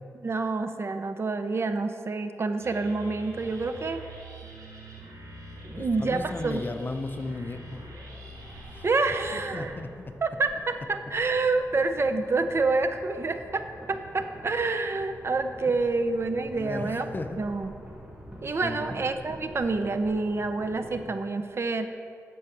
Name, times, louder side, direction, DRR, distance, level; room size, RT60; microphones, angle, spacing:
voice 1, 0.2-4.0 5.6-6.6 8.8-9.8 10.2-17.1 17.4-17.7 18.4-21.9, right 3 dB, 45° right, 8 dB, 0.5 m, -28 dB
sound 1, 2.6-9.7, right 1 dB, 80° right, 1.9 m, -44 dB
sound 2, 5.6-21.0, equal, 15° right, 1.9 m, -47 dB
voice 2, 5.8-7.9 8.7-8.8 9.3-10.1 16.5-17.4 18.6-19.0, left 2 dB, 35° left, 7 dB, 0.6 m, -35 dB
9.4 x 4.7 x 7.3 m, 2.3 s
cardioid pair, 85°, 6 cm